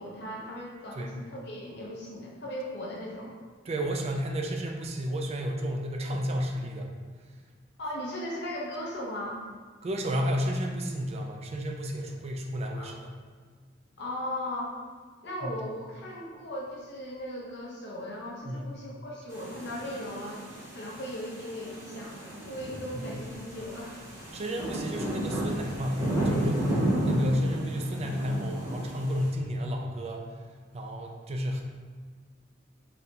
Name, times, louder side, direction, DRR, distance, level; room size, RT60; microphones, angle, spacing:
voice 1, 0.0-3.4 7.8-9.4 12.8-12.9 14.0-14.7 15.2-20.4 20.7-24.0, left 1 dB, 60° left, -4 dB, 0.9 m, -37 dB
voice 2, 3.7-6.9 9.8-13.1 15.4-15.5 18.4-18.7 24.3-26.7 27.0-30.3 30.7-31.6, equal, 35° right, 2 dB, 0.4 m, -31 dB
sound 1, 19.3-29.3, right 1 dB, 15° right, 1.0 m, -33 dB
4.0 x 3.2 x 2.8 m, 1.5 s
head